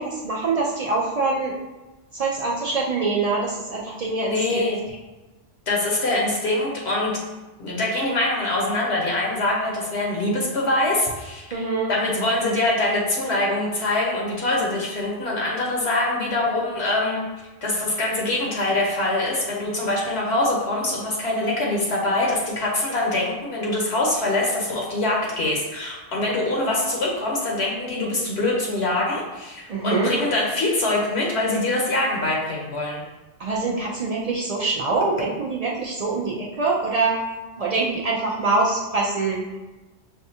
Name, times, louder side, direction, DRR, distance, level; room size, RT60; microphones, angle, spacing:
voice 1, 0.0-1.5 2.1-4.6 11.5-11.9 29.7-30.1 33.4-37.2 37.6-39.6, right 3 dB, 80° right, -3 dB, 0.3 m, -24 dB
voice 2, 4.2-4.8 5.7-7.2 7.6-17.2 17.6-33.1, left 2 dB, 65° left, -3 dB, 1.0 m, -24 dB
5.6 x 2.3 x 2.7 m, 1.1 s
omnidirectional pair, 1.3 m